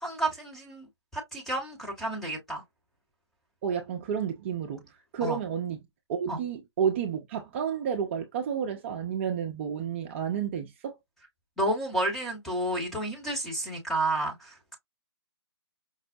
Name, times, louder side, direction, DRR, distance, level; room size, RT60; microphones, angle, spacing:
voice 1, 0.0-0.9 1.1-2.6 5.2-5.4 6.3-6.4 11.6-14.8, right 1 dB, ahead, 0.9 m, -31 dB
voice 2, 3.6-5.8 6.1-11.0, right 8 dB, 25° right, 0.5 m, -31 dB
5.3 x 2.0 x 2.6 m
figure-of-eight pair, 140°, 14 cm